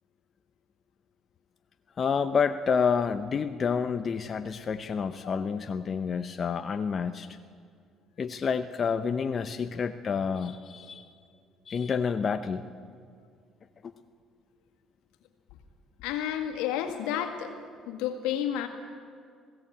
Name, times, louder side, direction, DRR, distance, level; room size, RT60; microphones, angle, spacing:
voice 1, 2.0-7.3 8.2-11.0 11.7-12.6 13.8-13.9, left 6 dB, 40° left, 9 dB, 0.8 m, -29 dB
voice 2, 16.0-17.5 17.9-18.7, left 10 dB, 90° left, 5 dB, 2.1 m, -31 dB
20.5 x 16.5 x 8.8 m, 2.1 s
supercardioid pair, 85°, 0 cm